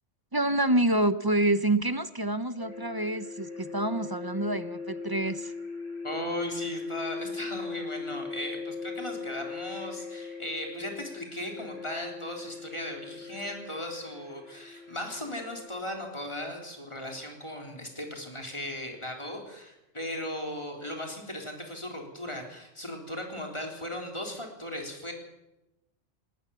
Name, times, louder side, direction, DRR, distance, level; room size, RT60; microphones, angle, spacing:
voice 1, 0.3-5.5, right 1 dB, 25° right, 12 dB, 0.6 m, -27 dB
sound 1, 2.6-15.6, left 4 dB, 75° left, 7.6 m, -39 dB
voice 2, 6.0-25.1, left 1 dB, 25° left, 2 dB, 3.8 m, -37 dB
19.5 x 19.0 x 7.2 m, 0.96 s
omnidirectional pair, 1.3 m